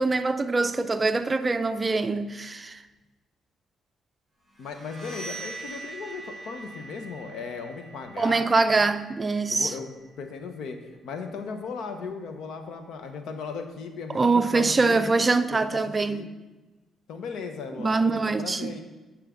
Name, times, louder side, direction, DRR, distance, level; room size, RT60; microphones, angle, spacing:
voice 1, 0.0-2.8 8.2-9.7 14.1-16.2 17.8-18.8, right 3 dB, 25° right, 0.4 m, -24 dB
voice 2, 4.6-8.8 9.5-9.9 10.2-10.8 11.0-15.1 15.5-15.7 16.1-16.3 17.1-18.8, left 5 dB, 75° left, 0.9 m, -37 dB
sound 1, 4.6-10.3, right 2 dB, 15° left, 1.9 m, -43 dB
10.0 x 4.9 x 3.7 m
cardioid pair, 90°, 0 cm